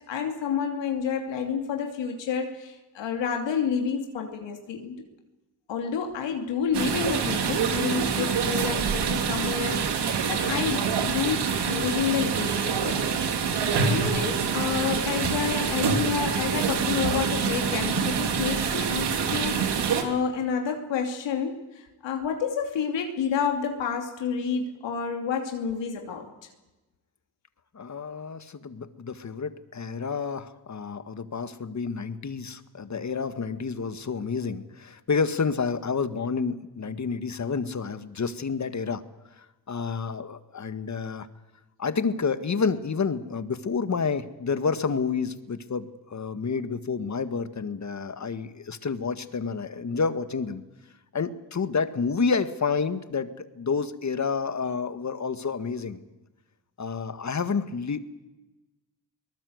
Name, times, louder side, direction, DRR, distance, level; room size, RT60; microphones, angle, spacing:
voice 1, 0.1-5.0 5.7-13.0 13.5-26.2, left 6 dB, 80° left, 3 dB, 2.8 m, -29 dB
sound 1, 6.7-20.0, right 6 dB, 70° right, 3.0 m, -26 dB
voice 2, 27.7-39.0 39.4-41.3 41.8-50.6 51.1-56.0 56.8-58.0, left 5 dB, 40° left, 11 dB, 1.8 m, -29 dB
23.0 x 19.5 x 8.0 m, 1.1 s
cardioid pair, 65°, 43 cm